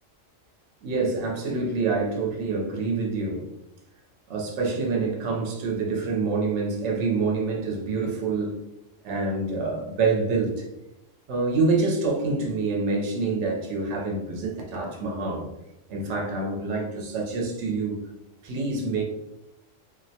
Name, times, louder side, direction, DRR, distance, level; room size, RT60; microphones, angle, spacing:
voice 1, 0.8-3.5 4.3-8.6 9.0-10.6 11.3-15.5 15.9-18.0 18.4-19.0, right 3 dB, 70° right, -1 dB, 0.9 m, -26 dB
2.5 x 2.0 x 2.7 m, 0.89 s
omnidirectional pair, 1.3 m